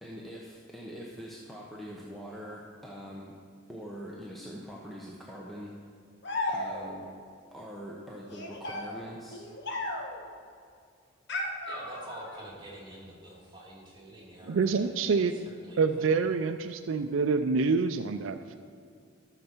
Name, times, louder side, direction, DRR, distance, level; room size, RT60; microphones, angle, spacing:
voice 1, 0.0-3.4 3.7-5.7 6.5-7.1 7.5-9.5, equal, ahead, -4 dB, 0.8 m, -43 dB
sound 1, 6.2-7.1 8.3-10.3 11.3-12.4, left 2 dB, 60° left, 1.3 m, -35 dB
voice 2, 11.6-16.2, right 1 dB, 25° right, -5 dB, 2.3 m, -47 dB
voice 3, 14.5-15.4 15.8-18.6, right 4 dB, 75° right, 9 dB, 0.4 m, -27 dB
13.5 x 6.6 x 4.5 m, 2.3 s
head